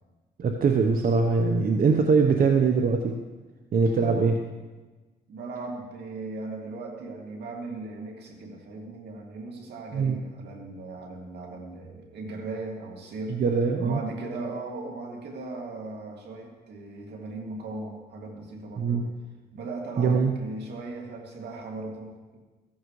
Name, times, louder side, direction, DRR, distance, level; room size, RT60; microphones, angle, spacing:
voice 1, 0.4-3.2 3.7-4.4 9.9-10.2 13.4-14.0 18.8-19.0 20.0-20.3, right 5 dB, 60° right, 4 dB, 1.0 m, -22 dB
voice 2, 4.0-4.4 5.3-13.4 13.8-19.1 19.5-22.4, right 3 dB, 80° right, 0 dB, 2.6 m, -38 dB
15.5 x 14.5 x 3.2 m, 1.2 s
cardioid pair, 80°, 17 cm